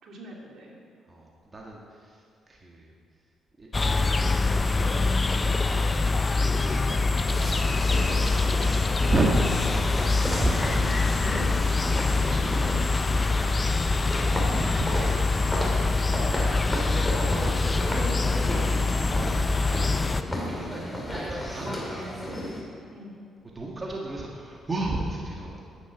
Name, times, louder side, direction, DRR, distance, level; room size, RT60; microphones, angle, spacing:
voice 1, 0.0-0.8 8.0-8.7 9.8-10.1 13.9-14.5 22.9-23.2, right 1 dB, 65° right, -2 dB, 2.7 m, -46 dB
voice 2, 1.1-3.0 3.6-7.4 7.9-13.3 14.5-15.7 16.6-18.7 19.1-19.5 20.0-22.2 23.5-25.7, right 2 dB, 30° right, -2 dB, 1.6 m, -34 dB
sound 1, 3.7-20.2, left 3 dB, 25° left, 0.6 m, -24 dB
sound 2, 7.3-22.6, equal, 5° left, 2.7 m, -34 dB
10.0 x 9.6 x 6.8 m, 2.3 s
cardioid pair, 90°, 0 cm